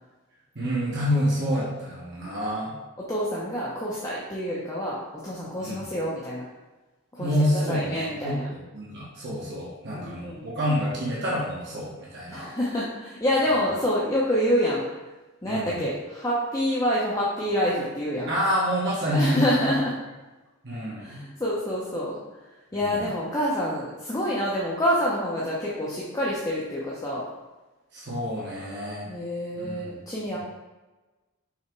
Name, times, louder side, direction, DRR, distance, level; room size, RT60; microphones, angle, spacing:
voice 1, 0.5-2.7 5.6-5.8 7.2-12.5 15.5-15.8 18.3-19.6 20.6-21.2 22.7-23.0 27.9-29.1 29.5-29.9, equal, 55° right, -6 dB, 1.3 m, -28 dB
voice 2, 3.0-6.4 7.1-8.4 9.9-10.5 12.3-14.8 15.4-18.3 19.0-19.9 21.0-22.2 22.7-27.3 29.1-30.4, equal, 15° left, -6 dB, 0.8 m, -27 dB
5.7 x 3.6 x 4.6 m, 1.2 s
head